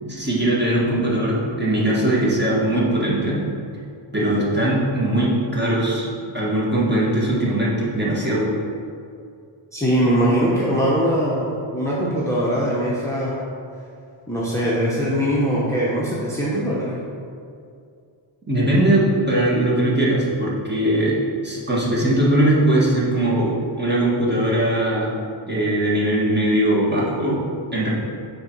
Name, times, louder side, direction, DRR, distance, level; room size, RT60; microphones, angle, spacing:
voice 1, 0.0-3.4 4.1-8.5 18.5-21.1 21.4-25.1 25.5-27.4 27.7-27.9, right 1 dB, 20° right, -5 dB, 1.5 m, -20 dB
voice 2, 9.7-13.4 14.3-17.0, equal, 5° left, -7 dB, 1.0 m, -21 dB
9.6 x 3.8 x 4.6 m, 2.4 s
wide cardioid pair, 145°, 50 cm